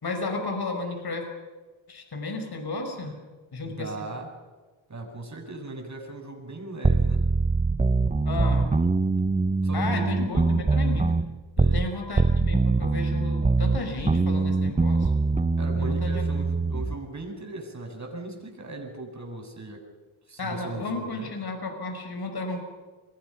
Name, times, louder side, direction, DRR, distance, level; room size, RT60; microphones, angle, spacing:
voice 1, 0.0-1.3 1.9-3.2 3.5-4.0 8.3-8.7 9.7-11.2 11.6-15.1 15.8-16.3 20.4-22.6, left 3 dB, 50° left, 5 dB, 5.6 m, -33 dB
voice 2, 3.6-4.3 4.9-7.3 9.6-10.1 11.6-11.9 15.6-19.9 20.3-21.3, right 2 dB, 35° right, 2 dB, 7.6 m, -38 dB
sound 1, 6.8-11.9 12.2-16.9, right 3 dB, 15° right, 0.8 m, -23 dB
29.0 x 22.0 x 6.0 m, 1.3 s
cardioid pair, 65°, 48 cm